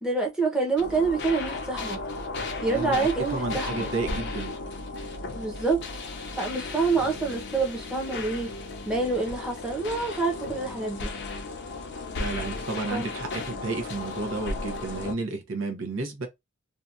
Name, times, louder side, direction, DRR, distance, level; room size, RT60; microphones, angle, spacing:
voice 1, 0.0-2.0 2.6-3.9 5.3-5.8 6.4-8.5 8.9-11.1 12.9-13.1, right 3 dB, 5° right, 0.7 m, -27 dB
sound 1, 0.8-15.1, left 3 dB, 55° left, 0.5 m, -35 dB
voice 2, 2.7-4.6 12.2-16.3, right 3 dB, 65° right, 0.7 m, -32 dB
2.7 x 2.2 x 2.5 m
head